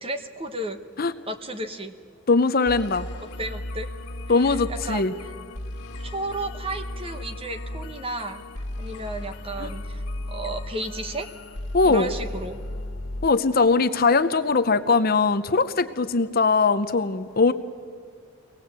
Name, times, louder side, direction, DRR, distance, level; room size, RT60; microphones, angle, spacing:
voice 1, 0.0-0.8 1.3-1.9 3.4-3.9 4.3-5.3 6.0-10.0 10.3-11.3 11.8-12.6, right 2 dB, 25° right, 6 dB, 1.0 m, -33 dB
voice 2, 2.3-3.1 4.3-5.1 9.6-9.7 11.7-12.1 13.2-17.5, left 4 dB, 45° left, 11 dB, 0.7 m, -21 dB
sound 1, 2.7-13.3, left 1 dB, 90° left, 1.7 m, -35 dB
24.0 x 18.5 x 8.1 m, 2.1 s
head